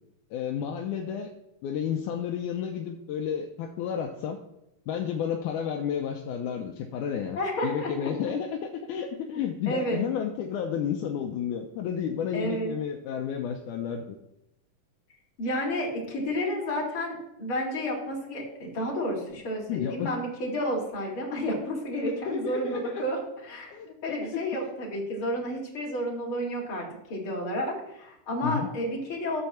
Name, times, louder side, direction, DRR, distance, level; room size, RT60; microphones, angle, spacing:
voice 1, 0.3-1.3 1.6-4.4 4.9-14.2 19.7-20.2 22.0-23.0 23.7-24.2 28.4-28.7, left 8 dB, 75° left, 2 dB, 2.1 m, -31 dB
voice 2, 7.3-8.1 9.7-10.0 12.3-12.7 15.4-23.7 24.0-29.4, equal, 40° left, -2 dB, 3.2 m, -31 dB
13.0 x 4.4 x 7.1 m, 0.84 s
omnidirectional pair, 3.9 m